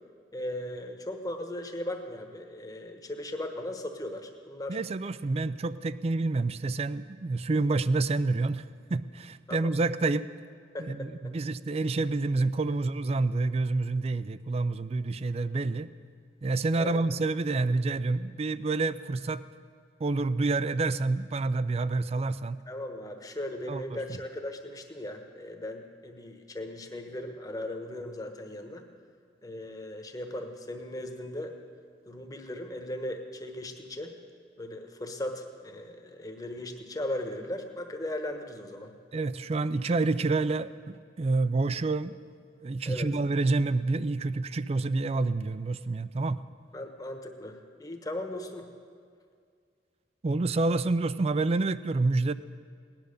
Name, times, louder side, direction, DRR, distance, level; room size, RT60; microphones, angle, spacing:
voice 1, 0.3-4.8 9.5-9.7 10.7-11.3 16.8-17.0 22.7-28.8 29.4-31.5 32.1-34.1 34.6-38.9 42.8-43.1 46.7-48.7, left 1 dB, 20° left, 5 dB, 1.2 m, -37 dB
voice 2, 4.7-8.6 8.9-10.3 10.8-15.9 16.4-19.4 20.0-22.6 23.7-23.8 39.1-42.1 42.6-46.4 50.2-52.3, right 3 dB, 35° right, 15 dB, 0.4 m, -28 dB
18.0 x 10.5 x 6.6 m, 2.2 s
head